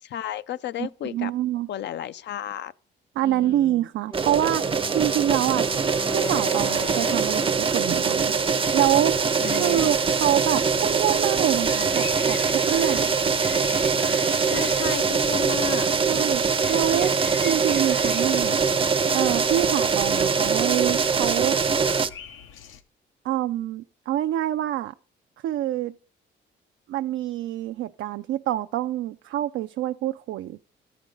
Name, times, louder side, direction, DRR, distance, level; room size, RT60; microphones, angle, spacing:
voice 1, 0.0-1.3 1.7-2.7 3.2-3.7 9.4-9.9 14.4-15.9, left 11 dB, 60° left, 0.5 m, -33 dB
voice 2, 0.8-1.7 3.2-5.7 6.1-8.3 8.7-9.1 9.5-13.1 16.1-17.1 17.4-18.7 19.1-21.6 23.2-24.9 25.4-26.0 26.9-30.6, right 13 dB, 75° right, 0.4 m, -26 dB
Wind instrument woodwind instrument, 4.1-9.1, left 2 dB, 20° left, 0.6 m, -38 dB
sound 1, 4.1-22.1, right 5 dB, 25° right, 0.5 m, -23 dB
sound 2, 8.6-22.8, left 8 dB, 80° left, 0.9 m, -43 dB
13.0 x 5.2 x 5.2 m
cardioid pair, 90°, 20 cm